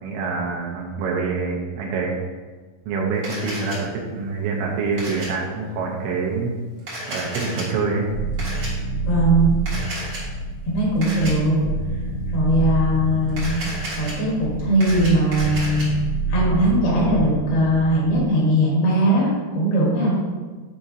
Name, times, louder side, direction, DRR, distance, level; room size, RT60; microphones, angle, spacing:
voice 1, 0.0-2.2 2.9-6.5 7.1-8.1, right 4 dB, 80° right, -1 dB, 3.0 m, -26 dB
Camera, 3.2-3.8 5.0-5.3 6.8-7.6 8.4-8.7 9.7-10.2 11.0-11.3 13.3-14.1 14.6-15.8, right 1 dB, 60° right, 1.3 m, -32 dB
sound 1, 8.1-18.2, right 3 dB, 85° left, 4.1 m, -27 dB
voice 2, 9.1-9.5 10.7-11.6 12.3-13.7 14.0-15.9 16.3-20.1, right 1 dB, 65° left, -5 dB, 3.2 m, -20 dB
8.8 x 5.0 x 2.7 m, 1.4 s
omnidirectional pair, 5.4 m